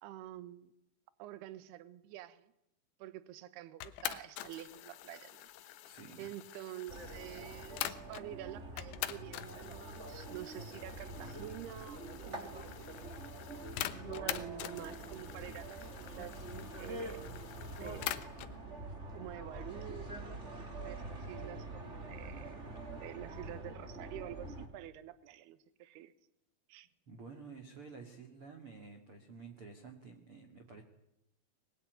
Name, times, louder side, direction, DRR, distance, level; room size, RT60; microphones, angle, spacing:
voice 1, 0.0-0.7 1.2-2.5 3.0-5.5 6.2-12.8 14.0-16.5 16.8-17.2 17.8-18.2 19.1-20.1 20.8-22.6 23.0-26.1 26.7-26.9, right 13 dB, 70° right, 2.7 m, -48 dB
sound 1, 3.8-8.3 8.8-18.6, left 14 dB, 75° left, 3.2 m, -45 dB
voice 2, 5.8-6.3 27.1-30.8, right 4 dB, 40° right, 2.0 m, -51 dB
sound 2, 6.9-24.7, right 2 dB, 20° right, 1.9 m, -45 dB
23.0 x 22.5 x 9.4 m
omnidirectional pair, 5.8 m